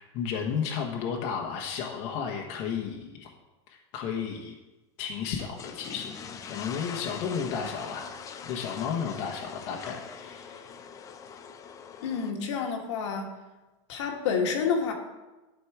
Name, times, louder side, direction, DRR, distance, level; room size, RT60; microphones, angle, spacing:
voice 1, 0.0-3.3 3.9-4.5 5.0-8.0 8.4-10.7, left 7 dB, 45° left, 0 dB, 1.1 m, -33 dB
sound 1, 5.3-12.3, left 7 dB, 20° left, 0.5 m, -43 dB
voice 2, 12.0-13.3 13.9-14.9, left 6 dB, 75° left, 3 dB, 1.6 m, -28 dB
11.5 x 4.3 x 4.7 m, 1.1 s
supercardioid pair, 145°, 15 cm